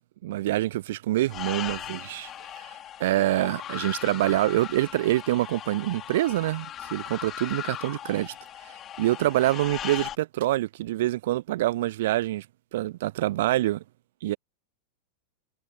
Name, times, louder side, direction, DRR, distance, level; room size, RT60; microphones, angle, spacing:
voice 1, 0.2-2.3 3.0-8.3 9.0-12.5 12.7-13.8 14.2-14.4, right 15 dB, 55° right, 0.4 m, -26 dB
sound 1, 1.3-10.2, left 11 dB, 30° left, 3.9 m, -38 dB
figure-of-eight pair, 90°, 0 cm